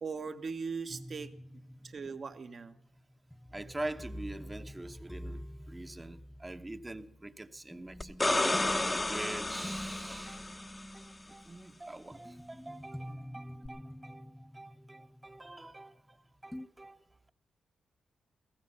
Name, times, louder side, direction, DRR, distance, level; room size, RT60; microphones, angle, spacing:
voice 1, 0.0-1.3 1.8-2.8, right 5 dB, 55° right, 8 dB, 1.3 m, -39 dB
sound 1, 0.9-16.1 16.5-16.7, equal, 5° left, 0.6 m, -47 dB
voice 2, 3.5-8.5 9.1-10.5 10.9-17.3, right 2 dB, 20° right, 8 dB, 1.0 m, -45 dB
sound 2, 8.0-10.8 13.7-13.8, left 2 dB, 25° left, 0.9 m, -31 dB
16.0 x 14.5 x 5.6 m, 0.69 s
supercardioid pair, 45°, 0 cm